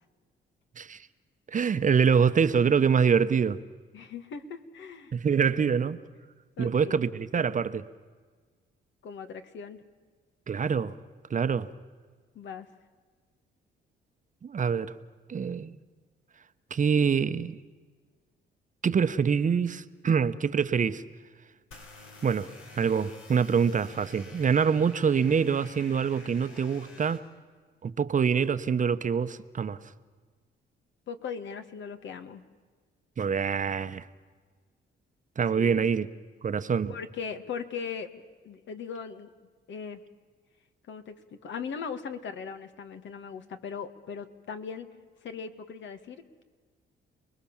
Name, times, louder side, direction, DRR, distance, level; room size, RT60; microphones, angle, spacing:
voice 1, 1.5-3.6 5.1-6.0 6.6-7.8 10.5-11.0 11.3-11.7 14.4-14.9 15.3-15.8 16.7-17.6 18.8-21.0 22.2-27.2 27.8-29.8 33.2-34.1 35.4-36.1 36.4-36.9, right 6 dB, 40° right, 1.0 m, -25 dB
voice 2, 3.9-5.1 6.6-7.0 9.0-9.8 12.4-12.7 31.1-32.4 35.5-35.9 36.9-39.3 39.7-40.0 40.9-41.2 41.4-44.9 45.2-46.4, left 6 dB, 70° left, 1.9 m, -39 dB
sound 1, 21.7-27.2, left 3 dB, 85° left, 5.2 m, -50 dB
29.0 x 20.5 x 7.3 m
cardioid pair, 90°, 20 cm